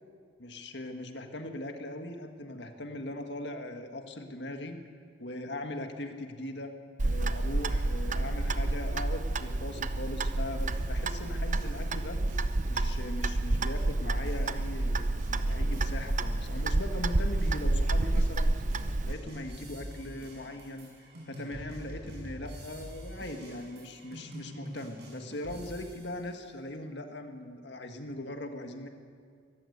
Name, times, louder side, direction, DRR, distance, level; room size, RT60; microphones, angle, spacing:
voice 1, 0.4-4.8 5.2-6.7 7.0-12.2 12.7-18.7 19.0-20.9 21.3-28.9, left 1 dB, 65° left, 5 dB, 1.8 m, -40 dB
Clock, 7.0-19.1, right 2 dB, 40° right, 0.7 m, -29 dB
sound 1, 10.6-16.2 16.4-26.2, equal, 60° right, 6.5 m, -45 dB
23.5 x 14.0 x 8.1 m, 2.1 s
head